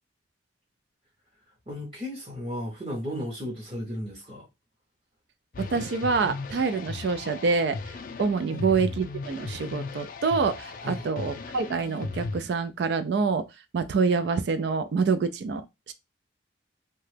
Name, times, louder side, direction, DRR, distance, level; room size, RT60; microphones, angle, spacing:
voice 1, 1.7-4.5 8.5-8.6 10.8-11.1, left 1 dB, 30° right, 0.8 m, -35 dB
sound 1, 5.5-12.4, left 3 dB, 45° left, 0.4 m, -37 dB
voice 2, 5.6-7.8 8.2-13.5 13.7-15.9, right 4 dB, 60° right, 0.3 m, -26 dB
2.8 x 2.2 x 3.2 m
head